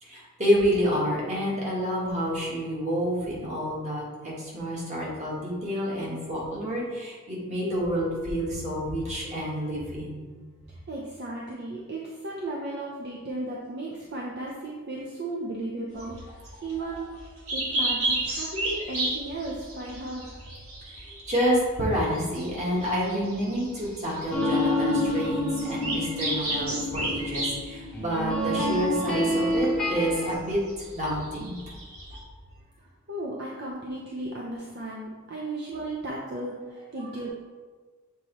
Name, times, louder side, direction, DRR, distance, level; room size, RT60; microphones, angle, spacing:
voice 1, 0.0-10.3 16.0-16.1 21.3-30.6 30.9-31.6 37.0-37.1, equal, 30° right, -5 dB, 1.5 m, -28 dB
voice 2, 10.7-16.1 16.6-17.1 17.5-20.3 33.1-37.3, right 2 dB, 50° right, -3 dB, 0.7 m, -35 dB
sound 1, 15.9-32.2, right 2 dB, 80° right, 1.6 m, -34 dB
sound 2, 24.3-30.3, left 1 dB, 5° left, 0.9 m, -28 dB
7.4 x 4.2 x 3.1 m, 1.4 s
head